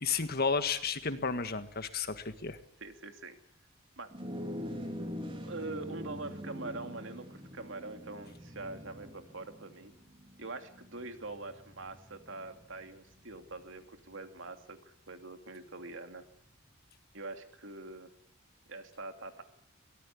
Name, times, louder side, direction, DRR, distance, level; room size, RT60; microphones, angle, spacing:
voice 1, 0.0-2.6, left 5 dB, 50° left, 10 dB, 1.7 m, -32 dB
voice 2, 2.8-3.4 4.0-4.1 5.4-9.9 10.4-16.2 17.1-18.1 18.7-19.4, right 2 dB, 65° right, 7 dB, 2.8 m, -44 dB
sound 1, 4.1-13.7, equal, 25° right, 3.7 m, -44 dB
23.5 x 18.5 x 8.6 m, 0.68 s
head